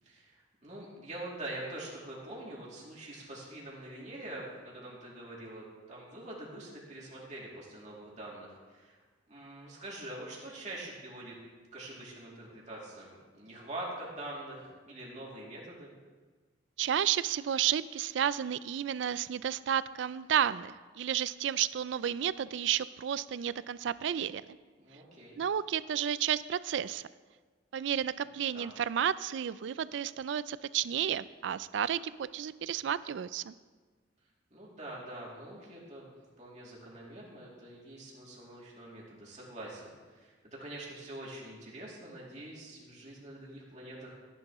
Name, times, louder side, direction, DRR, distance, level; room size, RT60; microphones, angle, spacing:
voice 1, 0.0-9.0 9.3-11.4 11.7-15.9 24.8-25.4 28.5-28.7 34.5-44.2, right 1 dB, 40° right, -5 dB, 2.7 m, -45 dB
voice 2, 16.8-24.6 25.4-27.0 27.7-33.5, right 9 dB, 70° right, 17 dB, 0.3 m, -32 dB
14.0 x 10.5 x 3.1 m, 1.4 s
head